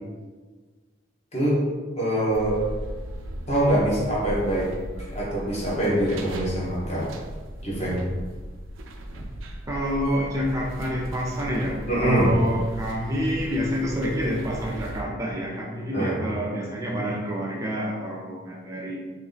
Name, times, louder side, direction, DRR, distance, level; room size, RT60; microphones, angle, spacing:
voice 1, 1.3-1.6 1.9-2.6 3.5-4.7 5.0-7.1 7.6-8.0 11.9-12.3 15.9-16.2, right 1 dB, 35° left, -6 dB, 1.1 m, -24 dB
sound 1, 2.3-15.0, right 1 dB, 85° right, 0.5 m, -37 dB
voice 2, 9.7-19.0, equal, 15° right, -3 dB, 0.4 m, -28 dB
3.2 x 2.9 x 3.9 m, 1.4 s
head